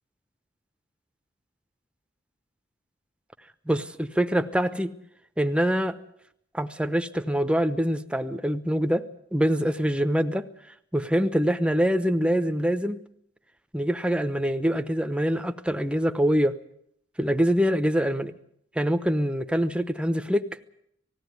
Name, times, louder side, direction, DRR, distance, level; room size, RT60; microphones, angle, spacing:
voice 1, 3.7-4.9 5.4-6.0 6.5-10.5 10.9-13.0 13.7-16.6 17.2-18.3 18.7-20.5, equal, 5° right, 9 dB, 0.9 m, -24 dB
19.5 x 16.5 x 9.6 m, 0.72 s
head